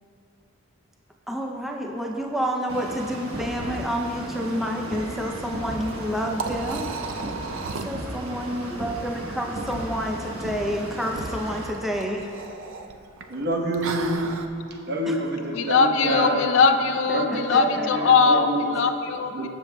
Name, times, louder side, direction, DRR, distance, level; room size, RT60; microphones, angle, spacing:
voice 1, 1.3-6.9 7.8-12.3 15.1-15.2 17.1-18.1, equal, ahead, 0 dB, 0.4 m, -29 dB
sound 1, 2.7-11.7, right 1 dB, 85° right, 1.1 m, -35 dB
Liquid, 5.8-14.5, right 4 dB, 65° right, 0.4 m, -37 dB
voice 2, 13.3-14.4 14.9-16.5 17.1-18.8 19.3-19.5, right 1 dB, 50° right, 1 dB, 1.0 m, -27 dB
voice 3, 15.5-19.5, left 5 dB, 60° left, 7 dB, 0.5 m, -21 dB
18.5 x 7.3 x 2.2 m, 2.8 s
head